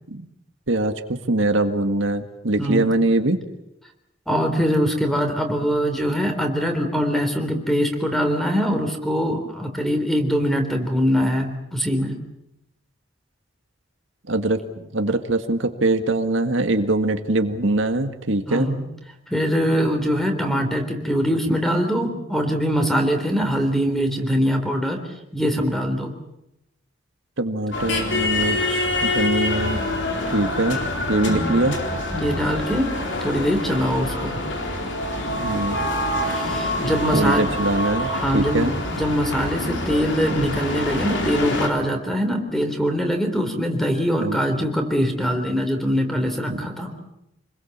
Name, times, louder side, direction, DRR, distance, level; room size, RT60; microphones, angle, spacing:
voice 1, 1.3-3.4 14.3-14.6 14.9-18.7 27.4-29.9 30.3-30.8 31.1-31.7 35.4-35.8 37.1-38.7 44.2-44.4 46.5-46.6, right 2 dB, 75° right, 7 dB, 1.8 m, -22 dB
voice 2, 2.6-2.9 4.3-12.2 18.5-18.8 19.3-25.0 25.3-26.1 29.7-29.9 31.3-31.6 32.1-34.4 36.2-37.4 38.1-46.9, equal, ahead, 5 dB, 3.6 m, -23 dB
sound 1, 27.7-41.7, left 1 dB, 70° left, 4.3 m, -26 dB
28.5 x 21.5 x 7.4 m, 0.87 s
head